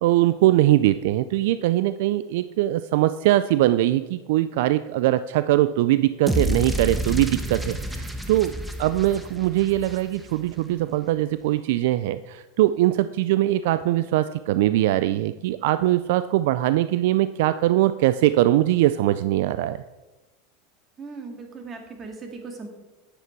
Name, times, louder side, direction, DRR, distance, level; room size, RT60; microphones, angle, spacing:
voice 1, 0.0-8.5 8.8-19.8, right 15 dB, 70° right, 13 dB, 0.3 m, -21 dB
sound 1, 6.3-10.5, right 1 dB, 5° right, 1.1 m, -29 dB
voice 2, 21.0-22.7, right 4 dB, 30° right, 3 dB, 2.2 m, -38 dB
9.8 x 8.1 x 4.6 m, 1.1 s
supercardioid pair, 110°, 0 cm